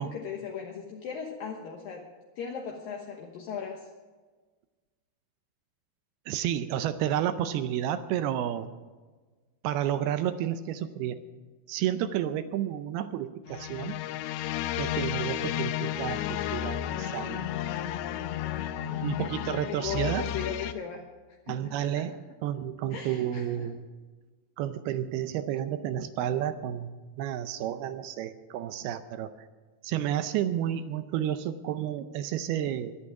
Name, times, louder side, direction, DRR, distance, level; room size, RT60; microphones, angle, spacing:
voice 1, 0.0-2.1 2.4-3.9 19.2-21.0 21.5-22.1 22.9-23.7, left 7 dB, 70° left, 1 dB, 2.6 m, -37 dB
voice 2, 6.3-8.7 9.6-11.2 11.7-14.0 14.8-17.5 18.8-20.3 21.5-22.2 22.4-23.9 24.6-29.3 29.8-33.0, right 11 dB, 80° right, 11 dB, 2.4 m, -31 dB
sound 1, 13.5-20.7, left 11 dB, 85° left, 2.9 m, -32 dB
23.0 x 8.7 x 4.8 m, 1.3 s
omnidirectional pair, 4.9 m